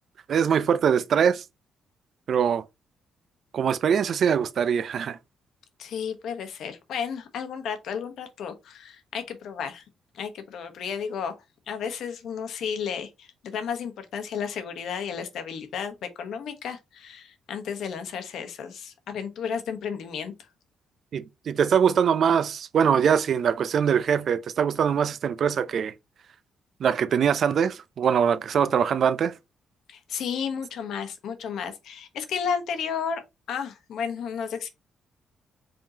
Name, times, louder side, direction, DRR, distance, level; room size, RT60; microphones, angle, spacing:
voice 1, 0.3-1.4 2.3-2.6 3.5-5.2 21.1-25.9 26.8-29.3, right 7 dB, 60° right, 0.5 m, -23 dB
voice 2, 5.8-9.8 10.1-11.3 11.7-20.3 29.9-33.2 33.5-34.7, left 7 dB, 75° left, 1.1 m, -33 dB
5.2 x 3.6 x 2.8 m
cardioid pair, 90°, 0 cm